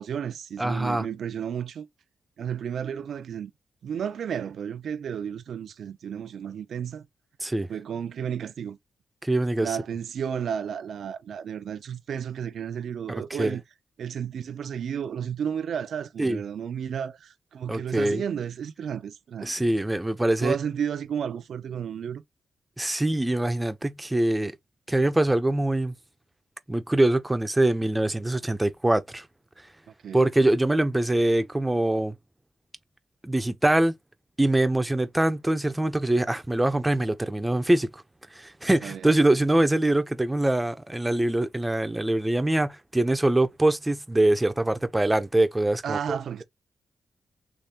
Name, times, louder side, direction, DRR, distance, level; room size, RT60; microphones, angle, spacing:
voice 1, 0.0-1.9 2.4-3.5 3.8-7.0 7.7-8.8 9.6-13.6 14.0-19.5 20.4-22.2 30.0-30.2 38.8-39.1 45.8-46.4, right 8 dB, 80° right, 0.5 m, -32 dB
voice 2, 0.6-1.1 7.4-7.7 9.2-9.8 13.1-13.6 16.2-16.4 17.7-18.2 19.4-20.6 22.8-24.5 24.9-25.9 26.7-29.3 30.1-32.2 33.2-33.9 34.4-38.0 38.3-46.2, right 1 dB, 15° right, 0.7 m, -23 dB
3.3 x 3.2 x 2.8 m
cardioid pair, 65°, 0 cm